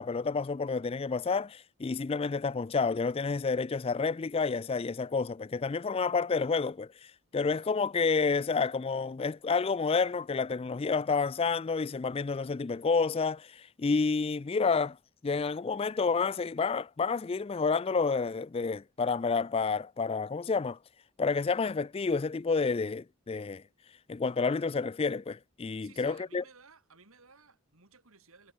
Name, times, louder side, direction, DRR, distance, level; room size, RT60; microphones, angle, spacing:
voice 1, 0.0-15.0 15.2-20.8 21.2-23.6 24.1-26.4, left 4 dB, 25° left, 0.3 m, -29 dB
voice 2, 25.8-28.5, right 5 dB, 70° right, 3.4 m, -57 dB
head